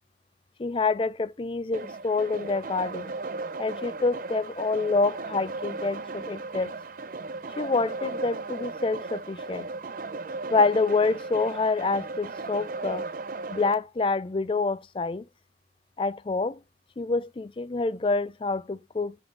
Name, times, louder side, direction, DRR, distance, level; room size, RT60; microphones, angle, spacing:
voice 1, 0.6-3.1 3.6-6.7 7.6-9.7 10.5-13.0 13.5-15.2 16.0-16.6 17.0-19.1, left 3 dB, 30° left, 0.3 m, -27 dB
sound 1, 1.7-13.7, right 3 dB, 50° right, 0.5 m, -36 dB
5.2 x 4.8 x 6.3 m
head